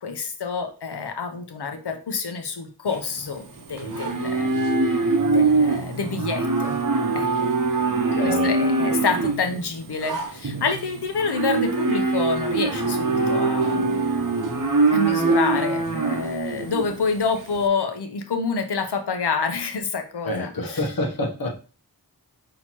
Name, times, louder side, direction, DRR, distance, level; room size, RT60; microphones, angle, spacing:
voice 1, 0.0-6.8 7.1-7.5 7.7-7.8 8.2-14.0 14.9-21.0, left 5 dB, 85° left, 6 dB, 0.7 m, -28 dB
Livestock farm animals working animals, 2.9-17.6, right 3 dB, 55° right, 0.8 m, -23 dB
voice 2, 8.1-8.5 20.3-21.5, left 1 dB, 65° left, 2 dB, 1.0 m, -27 dB
5.6 x 2.9 x 2.9 m, 0.35 s
wide cardioid pair, 45°, 39 cm